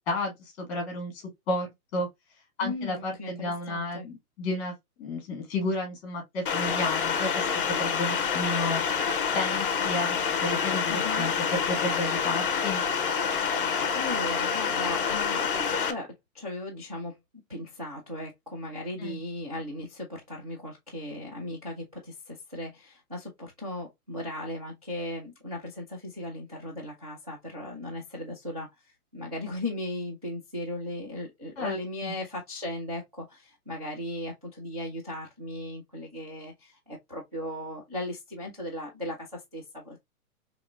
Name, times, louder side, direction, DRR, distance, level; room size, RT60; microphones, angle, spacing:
voice 1, 0.1-2.1 2.6-8.8 9.3-12.8 19.0-19.2 31.6-31.8 32.0-32.1, left 2 dB, 20° left, 1.4 m, -32 dB
voice 2, 2.6-4.1 10.8-11.3 13.4-17.2 17.5-28.7 29.1-40.0, left 1 dB, 30° right, 0.3 m, -37 dB
Unused radio frequency, 6.5-15.9, left 6 dB, 40° left, 0.5 m, -27 dB
4.1 x 2.9 x 2.3 m
hypercardioid pair, 170°, 44 cm